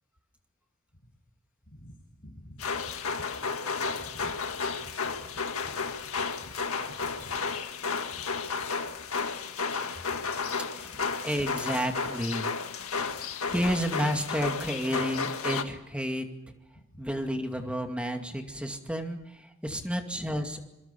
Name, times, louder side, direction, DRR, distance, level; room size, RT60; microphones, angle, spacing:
voice 1, 2.2-2.6 4.0-4.4 4.8-4.9 5.2-5.3 5.6-5.8 6.4-6.5 6.9-7.4 8.2-8.3 10.1-10.2 13.0-13.1 16.9-17.0 19.8-19.9, equal, 45° left, -2 dB, 6.6 m, -48 dB
sound 1, 2.6-15.6, left 5 dB, 85° left, 1.8 m, -32 dB
voice 2, 10.7-12.5 13.5-16.3 17.0-20.6, equal, 5° right, 4 dB, 2.3 m, -31 dB
26.5 x 22.5 x 7.1 m, 0.99 s
head